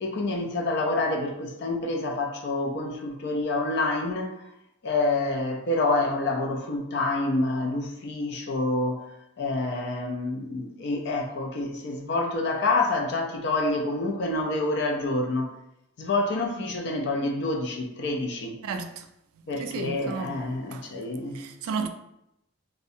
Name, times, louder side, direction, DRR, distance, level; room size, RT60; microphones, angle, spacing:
voice 1, 0.0-4.4 4.8-9.0 9.4-15.5 16.0-18.6 19.5-21.5 21.8-21.9, left 2 dB, 50° left, 0.4 m, -27 dB
voice 2, 18.6-19.1 19.4-20.4 20.7-20.9 21.3-21.9, right 5 dB, 80° right, 0.3 m, -33 dB
2.5 x 2.1 x 2.6 m
head